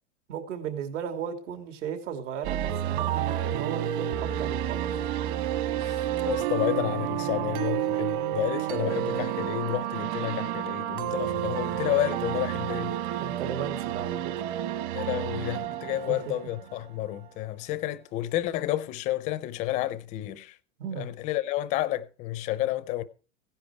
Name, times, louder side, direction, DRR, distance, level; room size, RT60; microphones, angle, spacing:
voice 1, 0.3-4.8 7.2-7.3 13.2-14.3 15.6-15.7 16.1-16.2 20.8-21.1, right 8 dB, 70° right, 3.0 m, -35 dB
sound 1, 2.4-17.3, right 11 dB, 40° right, 1.5 m, -30 dB
voice 2, 5.8-13.0 14.9-20.6 21.0-23.0, left 14 dB, 20° left, 0.5 m, -30 dB
16.5 x 10.5 x 4.7 m
supercardioid pair, 165°, 38 cm